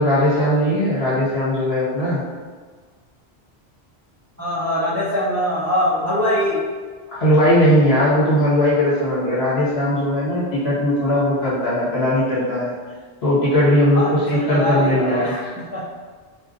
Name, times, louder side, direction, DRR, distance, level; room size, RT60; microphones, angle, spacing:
voice 1, 0.0-2.2 7.1-12.7 13.2-15.3, equal, 75° left, -10 dB, 1.7 m, -18 dB
voice 2, 4.4-6.6 13.9-15.8, equal, 20° right, -7 dB, 0.4 m, -22 dB
4.3 x 2.4 x 2.6 m, 1.5 s
omnidirectional pair, 1.1 m